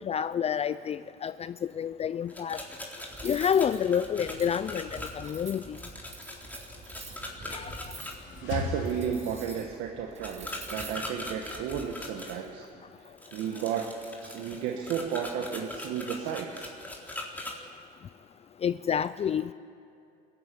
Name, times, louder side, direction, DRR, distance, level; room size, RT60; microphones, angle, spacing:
voice 1, 0.0-2.6 3.2-5.8 7.5-7.7 18.6-19.5, left 8 dB, 35° left, 15 dB, 0.5 m, -29 dB
sound 1, 2.3-8.1 10.2-12.4 13.2-17.5, left 1 dB, 10° left, 3.8 m, -41 dB
Cutlery silverware, 3.1-11.8, right 3 dB, 35° right, 6.8 m, -46 dB
sound 2, 7.8-9.9, left 4 dB, 75° left, 2.7 m, -38 dB
voice 2, 8.4-12.7 13.3-14.0 14.2-16.7, right 8 dB, 75° right, 2 dB, 1.7 m, -33 dB
22.5 x 15.0 x 9.8 m, 2.6 s
supercardioid pair, 95°, 19 cm